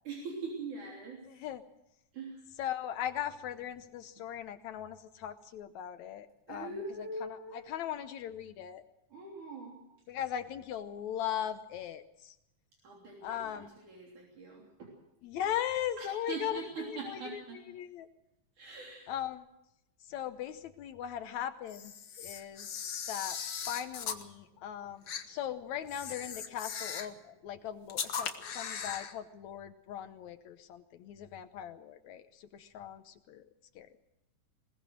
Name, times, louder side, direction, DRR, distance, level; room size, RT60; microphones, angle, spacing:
voice 1, 0.0-1.2 2.1-2.4 6.5-7.7 9.1-9.8 12.8-15.0 16.0-17.6 18.6-19.1, right 3 dB, 70° right, -2 dB, 4.8 m, -42 dB
voice 2, 2.6-6.7 7.2-8.8 10.1-12.4 13.2-13.7 15.2-17.4 17.7-18.1 19.1-19.5 20.1-21.9 22.2-22.7 23.1-23.4 23.7-33.5 33.8-33.9, left 10 dB, 70° left, 10 dB, 2.0 m, -39 dB
Camera, 21.7-24.2 25.1-25.2 25.9-27.2 27.9-29.1, left 7 dB, 55° left, 1.3 m, -38 dB
21.5 x 19.5 x 6.4 m, 0.86 s
omnidirectional pair, 3.7 m